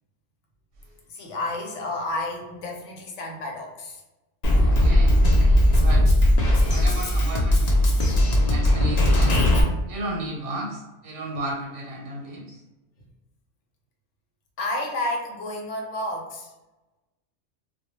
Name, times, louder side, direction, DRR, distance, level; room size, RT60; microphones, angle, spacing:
voice 1, 1.1-4.0 14.6-16.5, left 1 dB, 80° left, 0 dB, 0.9 m, -31 dB
Drum kit, 4.4-9.6, left 1 dB, 60° left, 0.4 m, -18 dB
voice 2, 4.6-5.3 5.8-6.2 6.7-7.9 8.5-9.4 9.9-12.6, right 1 dB, 90° right, -1 dB, 1.0 m, -34 dB
2.1 x 2.1 x 2.9 m, 1.1 s
omnidirectional pair, 1.2 m